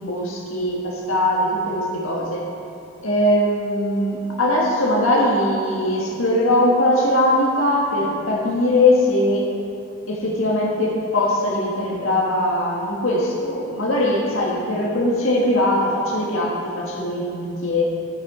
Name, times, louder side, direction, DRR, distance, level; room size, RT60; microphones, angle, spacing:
voice 1, 0.0-2.5 3.0-9.5 10.1-17.8, left 1 dB, 80° left, -3 dB, 1.8 m, -20 dB
12.0 x 8.7 x 4.3 m, 2.5 s
head